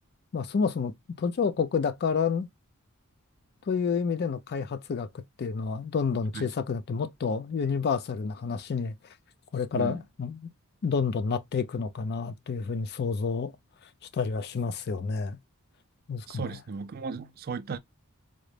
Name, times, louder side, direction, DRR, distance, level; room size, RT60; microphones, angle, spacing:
voice 1, 0.3-2.5 3.7-5.1 5.4-8.9 9.5-10.5 10.8-13.5 14.1-15.4 16.1-16.4, left 5 dB, 50° left, 0.4 m, -29 dB
voice 2, 16.3-17.8, right 5 dB, 45° right, 0.4 m, -35 dB
3.8 x 2.1 x 3.2 m
head